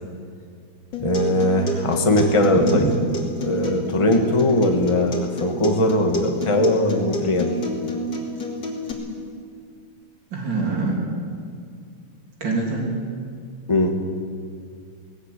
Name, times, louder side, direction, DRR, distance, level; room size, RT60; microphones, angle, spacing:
Acoustic guitar, 0.9-8.9, equal, 75° left, 3.5 m, -29 dB
voice 1, 1.0-2.9 3.4-7.5 13.7-13.9, left 1 dB, 15° left, 3 dB, 1.6 m, -20 dB
voice 2, 10.3-11.0 12.4-12.8, right 3 dB, 70° right, -1 dB, 3.9 m, -24 dB
19.0 x 18.0 x 8.4 m, 2.2 s
omnidirectional pair, 2.0 m